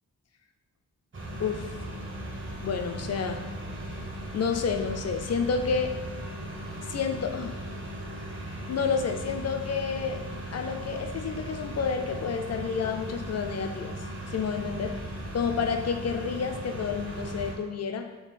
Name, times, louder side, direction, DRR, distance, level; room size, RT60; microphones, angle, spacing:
sound 1, 1.1-17.5, right 1 dB, 35° right, 0.7 m, -38 dB
voice 1, 2.6-3.5 4.3-5.9 6.9-7.6 8.7-10.2 10.5-14.0 14.3-15.0 15.3-18.1, left 6 dB, 50° left, 6 dB, 0.4 m, -29 dB
3.8 x 2.4 x 4.0 m, 1.1 s
wide cardioid pair, 105°, 34 cm